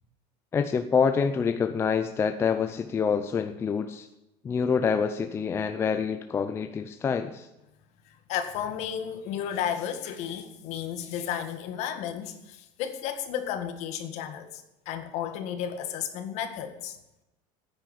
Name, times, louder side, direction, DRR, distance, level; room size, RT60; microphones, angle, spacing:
voice 1, 0.5-4.1 4.4-7.5, left 6 dB, 15° left, 0.5 m, -26 dB
voice 2, 8.3-17.0, left 9 dB, 50° left, 1.8 m, -33 dB
9.8 x 9.3 x 10.0 m
cardioid pair, 170°, 15 cm